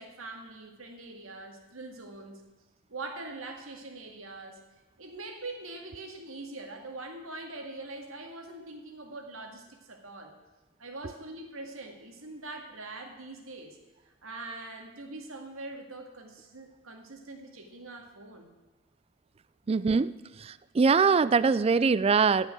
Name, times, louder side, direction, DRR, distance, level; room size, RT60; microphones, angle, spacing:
voice 1, 0.0-2.4 2.9-4.6 5.0-10.3 10.8-13.8 14.0-18.5, right 2 dB, 85° right, 4 dB, 2.0 m, -43 dB
voice 2, 19.7-20.1 20.4-22.5, right 5 dB, 30° right, 17 dB, 0.3 m, -23 dB
15.5 x 5.6 x 9.2 m, 1.1 s
head